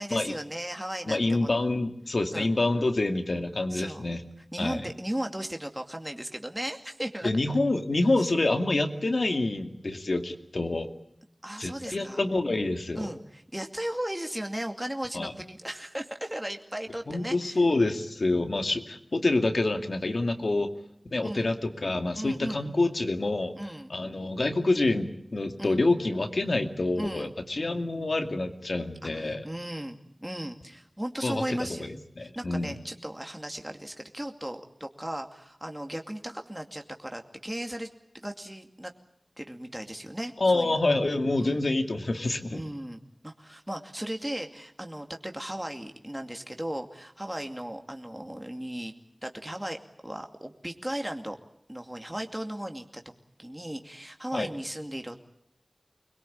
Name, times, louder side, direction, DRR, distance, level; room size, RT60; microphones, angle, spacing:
voice 1, 0.0-1.5 2.3-2.5 3.7-4.1 4.5-7.3 11.4-12.2 13.0-17.6 21.2-21.5 22.1-22.7 23.5-23.9 25.6-25.8 27.0-27.3 29.0-31.9 32.2-37.9 38.1-38.9 39.4-40.8 41.4-41.6 42.5-48.9 49.2-51.4 51.7-53.0 53.4-55.2, right 1 dB, 15° right, 4 dB, 2.3 m, -36 dB
voice 2, 1.1-4.2 4.6-4.8 7.2-10.9 11.6-13.1 15.1-15.3 17.1-20.7 21.1-23.6 23.9-29.4 31.2-32.7 40.4-42.6 54.3-54.5, left 2 dB, 75° left, 6 dB, 2.3 m, -27 dB
25.5 x 21.5 x 8.7 m, 0.73 s
wide cardioid pair, 55°, 0 cm